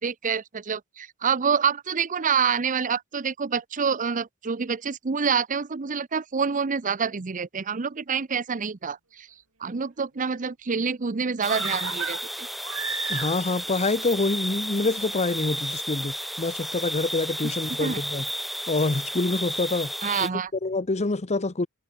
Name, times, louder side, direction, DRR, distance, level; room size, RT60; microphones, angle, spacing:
voice 1, 0.0-9.3 9.6-12.5 17.8-18.0 20.0-20.5, right 6 dB, 40° right, 0.7 m, -27 dB
sound 1, 11.4-20.3, equal, ahead, 1.5 m, -32 dB
sound 2, 11.4-13.7 14.0-14.1, right 7 dB, 85° right, 4.5 m, -34 dB
voice 2, 13.1-18.3 18.7-19.9 20.2-21.7, left 3 dB, 30° left, 0.9 m, -26 dB
head